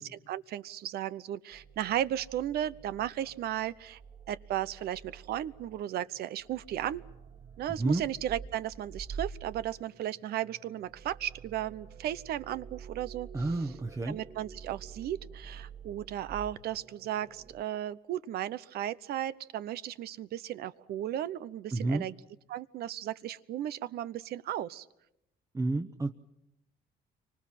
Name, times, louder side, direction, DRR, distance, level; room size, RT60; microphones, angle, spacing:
voice 1, 0.0-4.0 4.3-7.0 7.6-13.5 14.1-22.1 22.5-24.9, right 12 dB, 70° right, 16 dB, 0.9 m, -35 dB
sound 1, 1.5-17.6, right 6 dB, 45° right, 4.1 m, -48 dB
voice 2, 13.3-14.2 21.7-22.1 25.5-26.1, right 2 dB, 20° right, 6 dB, 1.0 m, -30 dB
29.5 x 25.0 x 5.9 m, 0.86 s
cardioid pair, 110°, 17 cm